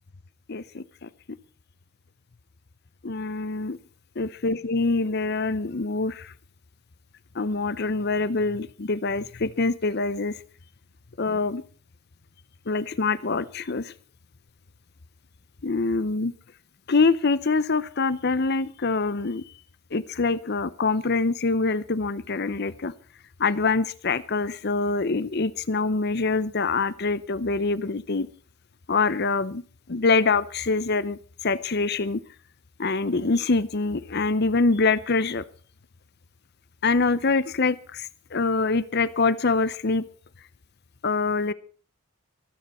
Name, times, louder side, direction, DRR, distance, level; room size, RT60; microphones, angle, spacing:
voice 1, 0.5-1.1 3.0-3.8 4.2-6.3 7.4-10.3 11.2-11.6 12.7-13.9 15.6-16.3 16.9-19.4 19.9-22.9 23.4-28.3 28.9-29.6 29.9-32.2 32.8-35.4 36.8-40.0 41.0-41.5, left 3 dB, 50° left, 16 dB, 0.7 m, -25 dB
24.5 x 9.4 x 4.3 m, 0.41 s
head